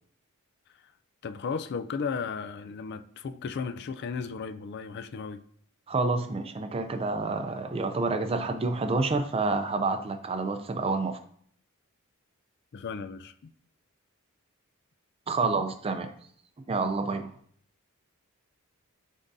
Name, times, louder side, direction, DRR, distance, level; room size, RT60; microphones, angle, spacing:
voice 1, 1.2-5.4 12.7-13.3, left 5 dB, 50° left, 0.4 m, -35 dB
voice 2, 5.9-11.2 15.3-16.1 16.7-17.3, right 3 dB, 25° right, 0.4 m, -28 dB
9.9 x 3.6 x 2.7 m
head